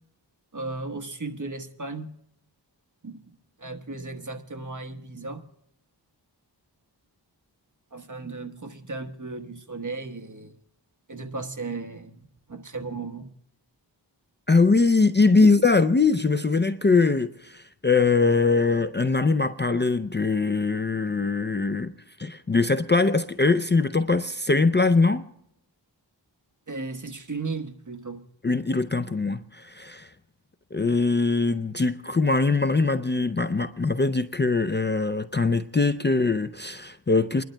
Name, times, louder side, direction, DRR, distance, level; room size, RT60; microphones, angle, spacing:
voice 1, 0.5-2.1 3.0-3.2 3.6-5.4 7.9-10.5 11.1-13.3 15.4-15.5 26.7-28.2, right 3 dB, 45° right, 1.3 m, -35 dB
voice 2, 14.5-21.9 22.2-25.2 28.4-30.1 30.7-37.4, left 3 dB, 25° left, 0.5 m, -22 dB
29.5 x 11.5 x 2.2 m
wide cardioid pair, 40°, 44 cm